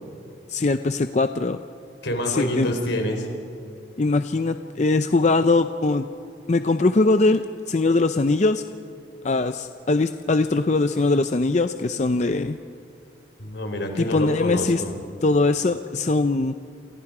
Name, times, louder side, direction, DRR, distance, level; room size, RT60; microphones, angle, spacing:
voice 1, 0.5-1.6 2.3-2.7 4.0-6.0 6.5-8.6 9.2-12.6 14.0-14.8 15.2-16.5, left 3 dB, 40° left, 9 dB, 0.5 m, -21 dB
voice 2, 2.0-3.3 13.4-14.9, left 1 dB, 75° left, 4 dB, 4.0 m, -27 dB
28.5 x 27.0 x 4.9 m, 2.4 s
head